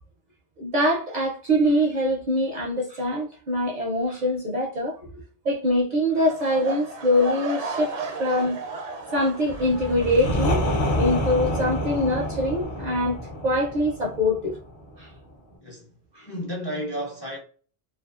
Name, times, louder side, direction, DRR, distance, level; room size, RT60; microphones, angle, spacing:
voice 1, 0.6-5.1 5.4-8.6 9.1-13.2 13.4-14.6 15.0-15.1 16.2-16.3, left 1 dB, 55° right, 0.5 m, -24 dB
sound 1, 6.1-11.2 11.4-11.8 12.3-12.4, right 3 dB, 90° right, 0.9 m, -35 dB
sound 2, 9.4-15.2, left 1 dB, 60° left, 0.8 m, -28 dB
voice 2, 15.6-17.4, equal, 30° left, 0.5 m, -33 dB
2.5 x 2.4 x 2.3 m
omnidirectional pair, 1.1 m